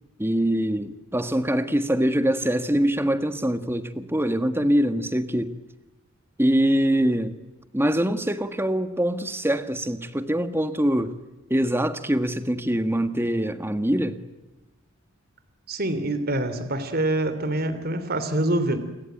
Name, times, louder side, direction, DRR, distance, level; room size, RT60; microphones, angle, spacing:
voice 1, 0.2-5.5 6.4-7.4 7.7-11.2 11.5-14.2, right 1 dB, 10° right, 10 dB, 1.6 m, -23 dB
voice 2, 15.7-18.8, right 1 dB, 45° right, 11 dB, 3.1 m, -25 dB
29.0 x 22.5 x 9.2 m, 1.0 s
head